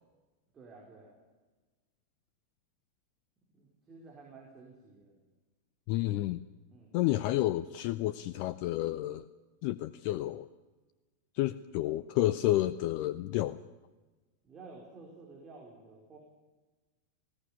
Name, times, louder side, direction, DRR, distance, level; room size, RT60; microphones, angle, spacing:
voice 1, 0.5-1.2 3.5-5.2 6.7-7.0 14.4-16.2, right 3 dB, 20° right, -1 dB, 4.9 m, -52 dB
voice 2, 5.9-6.4 6.9-9.3 9.6-10.5 11.3-13.6, left 15 dB, 45° left, 16 dB, 0.6 m, -30 dB
19.5 x 17.0 x 8.5 m, 1.2 s
figure-of-eight pair, 90°, 0 cm